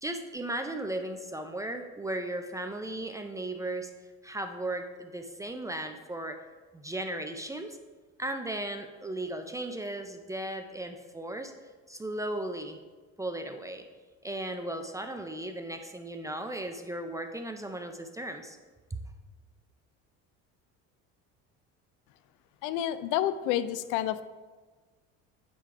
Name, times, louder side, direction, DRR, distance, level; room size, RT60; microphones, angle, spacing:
voice 1, 0.0-3.9 4.2-6.4 6.7-7.8 8.2-11.5 11.9-12.8 13.2-13.8 14.2-18.6 18.9-19.0, right 1 dB, 10° right, 6 dB, 0.4 m, -36 dB
voice 2, 22.6-24.2, left 12 dB, 80° left, 14 dB, 0.5 m, -29 dB
8.4 x 3.7 x 4.7 m, 1.4 s
cardioid pair, 120°, 31 cm